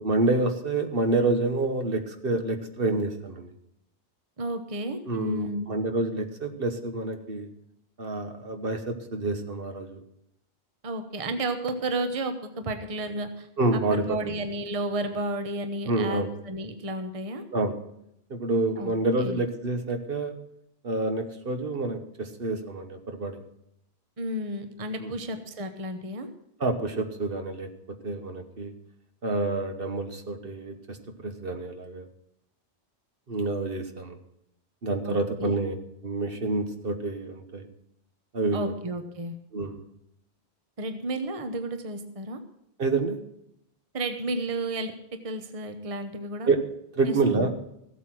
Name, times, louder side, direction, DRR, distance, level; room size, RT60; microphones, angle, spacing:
voice 1, 0.0-3.5 5.1-7.5 8.0-10.0 13.6-14.3 15.8-16.3 17.5-17.8 18.3-20.3 20.8-23.4 25.0-25.2 26.6-27.7 28.0-28.7 29.2-32.1 33.3-34.2 34.8-35.7 36.0-37.7 38.3-38.7 39.5-39.8 42.8-43.2 46.4-46.6 47.0-47.5, right 2 dB, 60° right, 6 dB, 1.4 m, -28 dB
voice 2, 4.4-5.6 10.8-17.4 18.8-18.9 19.2-19.4 24.2-26.3 35.0-35.6 38.5-39.3 40.8-42.4 43.9-44.9 45.2-46.5 47.1-47.5, right 1 dB, 35° right, 7 dB, 1.1 m, -32 dB
15.0 x 8.3 x 6.1 m, 0.79 s
omnidirectional pair, 1.1 m